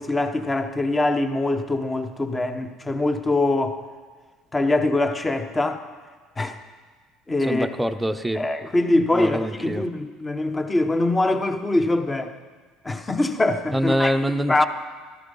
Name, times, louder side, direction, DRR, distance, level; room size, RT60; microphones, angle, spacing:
voice 1, 0.0-3.8 4.5-5.8 6.4-6.6 7.3-7.7 8.3-12.3 12.8-14.1 14.5-14.6, left 2 dB, 20° left, 8 dB, 1.1 m, -23 dB
voice 2, 7.4-8.4 9.1-9.8 13.7-14.6, equal, 5° right, 6 dB, 0.8 m, -24 dB
13.0 x 12.5 x 5.5 m, 1.5 s
supercardioid pair, 95°, 0 cm